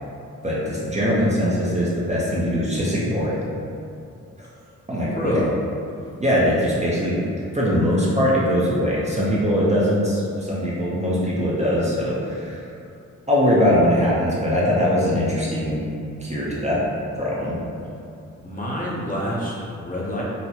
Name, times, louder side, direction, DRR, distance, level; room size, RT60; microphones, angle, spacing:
voice 1, 0.4-3.4 4.9-5.5 6.2-7.2 7.5-12.6 13.3-15.8 16.2-16.8 17.2-17.6, equal, 20° right, -7 dB, 0.6 m, -21 dB
voice 2, 5.1-5.5 18.4-20.2, equal, 25° left, -6 dB, 0.7 m, -27 dB
4.1 x 2.1 x 2.8 m, 2.5 s
cardioid pair, 85°, 31 cm